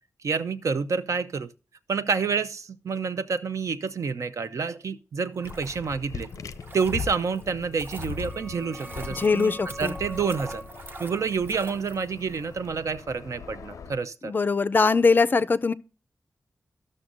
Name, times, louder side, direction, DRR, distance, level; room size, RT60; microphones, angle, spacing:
voice 1, 0.2-1.5 1.9-6.3 6.7-10.6 11.0-14.3, right 5 dB, 70° right, 0.6 m, -28 dB
sound 1, 5.3-12.4 12.7-12.8, right 2 dB, 40° right, 0.9 m, -45 dB
sound 2, 5.4-14.0, left 6 dB, 85° left, 0.5 m, -40 dB
sound 3, 7.6-13.1, right 1 dB, 10° right, 0.9 m, -44 dB
voice 2, 9.1-10.0 14.2-15.7, left 4 dB, 35° left, 0.4 m, -22 dB
13.5 x 6.3 x 2.5 m
wide cardioid pair, 140°, 6 cm